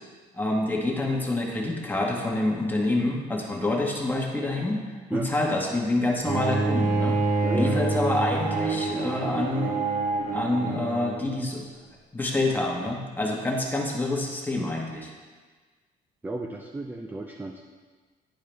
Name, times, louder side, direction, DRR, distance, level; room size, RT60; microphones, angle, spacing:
voice 1, 0.3-4.8 5.1-7.2 7.5-9.8 10.3-11.7 12.1-15.1, left 2 dB, 10° left, -1 dB, 1.3 m, -27 dB
Bowed string instrument, 6.2-11.3, right 3 dB, 50° right, 1.1 m, -27 dB
voice 2, 7.4-7.8 16.2-17.6, right 2 dB, 10° right, 3 dB, 0.4 m, -33 dB
10.5 x 4.7 x 3.4 m, 1.4 s
cardioid pair, 110°, 17 cm